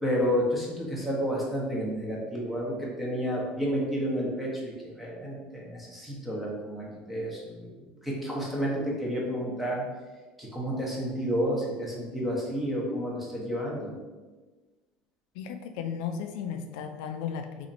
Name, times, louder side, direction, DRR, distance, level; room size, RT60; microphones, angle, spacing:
voice 1, 0.0-7.7 8.0-9.9 10.4-13.9, equal, ahead, -4 dB, 0.8 m, -30 dB
voice 2, 15.3-17.7, left 7 dB, 85° left, 6 dB, 0.3 m, -35 dB
2.8 x 2.5 x 4.0 m, 1.3 s
cardioid pair, 150°, 4 cm